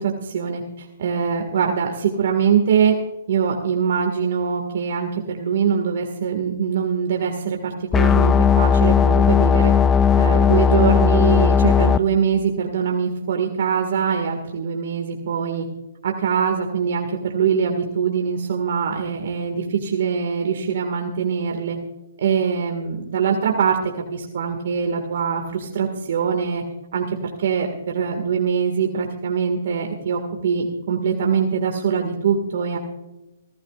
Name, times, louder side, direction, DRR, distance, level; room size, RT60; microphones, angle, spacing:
voice 1, 0.0-2.9 3.3-9.7 10.2-15.7 16.0-21.8 22.2-23.8 24.1-26.6 26.9-27.7 27.9-32.8, right 7 dB, 60° right, 3 dB, 1.9 m, -23 dB
sound 1, 7.9-12.0, left 7 dB, 10° left, 0.4 m, -16 dB
25.0 x 16.0 x 2.5 m, 1.0 s
hypercardioid pair, 150°, 0 cm